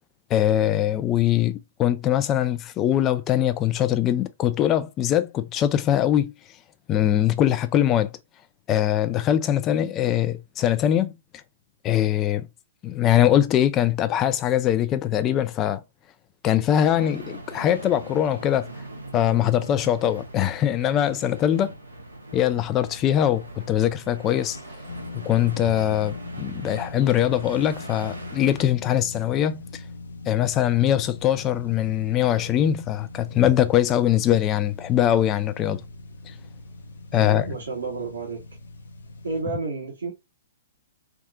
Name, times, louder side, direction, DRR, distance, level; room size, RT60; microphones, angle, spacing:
voice 1, 0.3-6.3 6.9-8.1 8.7-11.2 11.8-12.5 12.8-15.8 16.4-18.7 19.1-21.7 22.3-24.6 25.1-29.8 30.3-35.8 37.1-37.5, left 11 dB, 25° left, 0.4 m, -22 dB
sound 1, 16.7-28.7, right 1 dB, 90° right, 1.0 m, -41 dB
sound 2, 24.9-39.4, left 2 dB, 75° left, 0.6 m, -40 dB
voice 2, 37.1-38.4 39.2-40.1, right 4 dB, 75° right, 1.3 m, -31 dB
3.5 x 2.6 x 2.2 m
figure-of-eight pair, 120°, 0 cm